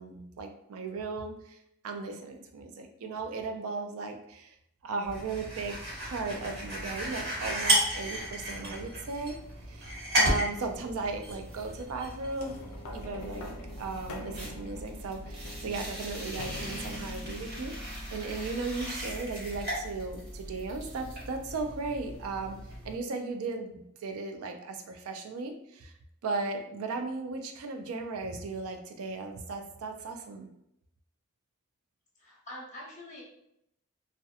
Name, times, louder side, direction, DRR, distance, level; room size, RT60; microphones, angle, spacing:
voice 1, 0.0-1.6 1.8-4.6 4.8-9.4 9.7-12.6 12.9-13.5 13.8-22.6 22.8-25.9 26.2-30.5, right 3 dB, 85° right, 5 dB, 0.4 m, -36 dB
sound 1, 5.1-23.0, equal, 45° right, 1.2 m, -35 dB
sound 2, 12.4-19.1 19.8-19.9, left 2 dB, 80° left, 0.4 m, -45 dB
voice 2, 32.2-33.2, left 1 dB, 35° left, -4 dB, 0.8 m, -44 dB
2.7 x 2.1 x 2.3 m, 0.77 s
head